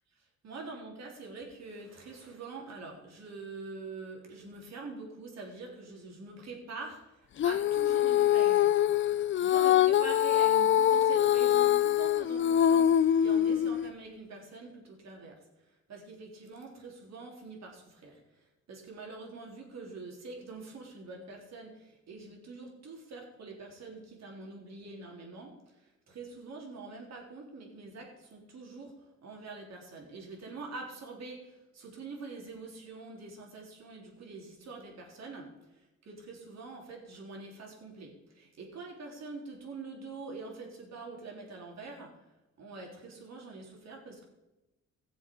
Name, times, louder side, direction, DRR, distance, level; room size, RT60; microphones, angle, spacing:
voice 1, 0.4-8.7 9.3-15.4 15.9-42.2 42.6-44.3, right 3 dB, 60° right, 0 dB, 3.6 m, -45 dB
Female singing, 7.4-13.9, left 10 dB, 40° left, 0.4 m, -24 dB
17.5 x 7.1 x 5.4 m, 1.0 s
cardioid pair, 90°, 30 cm